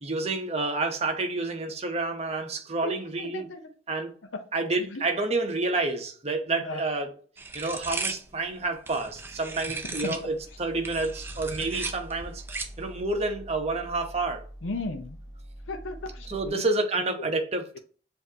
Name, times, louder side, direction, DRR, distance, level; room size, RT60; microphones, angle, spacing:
voice 1, 0.0-3.5 3.9-4.1 4.5-7.1 7.5-12.4 12.8-14.4 16.3-17.8, right 3 dB, 35° right, 0.8 m, -29 dB
voice 2, 2.8-3.6 4.3-4.4 4.9-5.0 6.6-6.8 9.9-10.1 14.6-15.2 15.7-16.6 17.2-17.3, left 2 dB, 85° left, 0.7 m, -35 dB
sound 1, 7.4-10.3 10.7-12.9, right 3 dB, 10° right, 0.4 m, -36 dB
sound 2, 9.0-16.5, equal, 20° left, 1.1 m, -45 dB
7.1 x 2.7 x 2.7 m
head